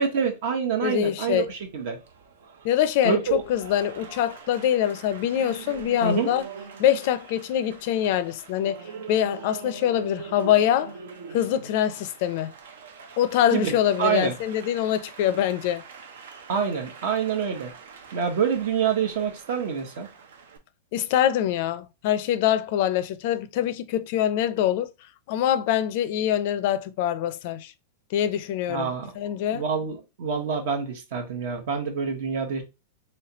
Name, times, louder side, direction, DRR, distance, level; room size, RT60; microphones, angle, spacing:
voice 1, 0.0-2.0 3.0-3.4 6.0-6.3 13.5-14.3 16.5-17.7 18.1-20.1 28.7-29.2 29.5-32.6, right 6 dB, 60° right, 1.0 m, -26 dB
voice 2, 0.8-1.5 2.6-6.5 6.8-8.8 9.1-10.9 11.3-12.5 13.2-15.8 20.9-24.9 25.3-27.7 28.1-28.9 29.2-29.6, left 11 dB, 55° left, 0.4 m, -24 dB
Applause, 0.8-20.6, right 5 dB, 80° right, 0.7 m, -44 dB
3.2 x 3.0 x 2.9 m
hypercardioid pair, 140°, 0 cm